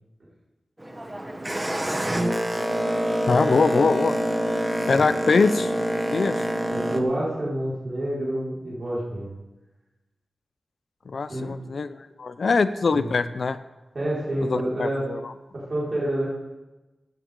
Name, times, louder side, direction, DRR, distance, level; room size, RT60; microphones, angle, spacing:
Boat Water vehicle, 0.8-7.0, equal, 15° right, 1.2 m, -26 dB
voice 1, 3.3-4.2 4.9-5.7 6.1-6.4 11.1-13.6 14.5-15.2, left 4 dB, 65° left, 12 dB, 0.6 m, -23 dB
voice 2, 6.7-9.3 11.3-11.6 12.9-13.1 13.9-15.1 15.5-16.3, right 1 dB, 50° right, -7 dB, 5.1 m, -28 dB
16.0 x 10.5 x 3.8 m, 1.1 s
wide cardioid pair, 70°, 0 cm